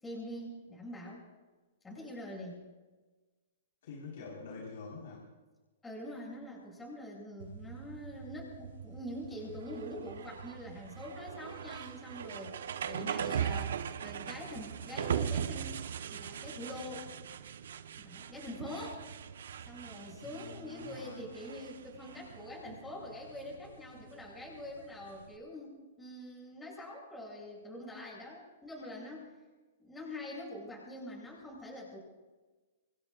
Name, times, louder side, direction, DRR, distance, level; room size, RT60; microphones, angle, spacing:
voice 1, 0.0-1.2 1.8-2.6 5.8-15.8 16.1-17.1 18.0-19.0 19.6-29.3 29.8-32.0, left 1 dB, 10° left, -4 dB, 7.5 m, -45 dB
voice 2, 3.8-5.2 20.2-21.3, left 4 dB, 70° left, -2 dB, 4.7 m, -46 dB
sound 1, 7.4-25.3, right 8 dB, 75° right, 1.1 m, -40 dB
27.5 x 20.5 x 2.5 m, 1.2 s
hypercardioid pair, 135°, 0 cm